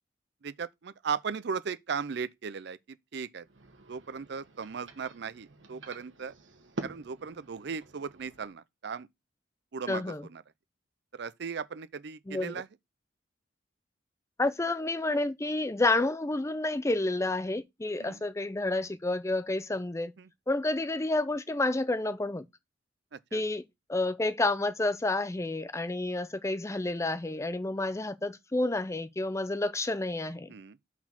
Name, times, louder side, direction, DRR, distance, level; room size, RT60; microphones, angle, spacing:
voice 1, 0.4-3.5 3.9-6.3 6.8-9.1 9.7-10.4 11.1-12.7 18.0-18.2 20.2-20.3 23.1-23.4 30.5-30.8, right 6 dB, 60° right, 0.5 m, -37 dB
sound 1, 3.4-8.5, right 2 dB, 80° right, 1.2 m, -46 dB
voice 2, 9.9-10.2 12.3-12.5 14.4-20.1 20.5-22.4 23.3-23.6 23.9-30.5, left 2 dB, 15° left, 0.5 m, -30 dB
5.9 x 4.4 x 5.9 m
head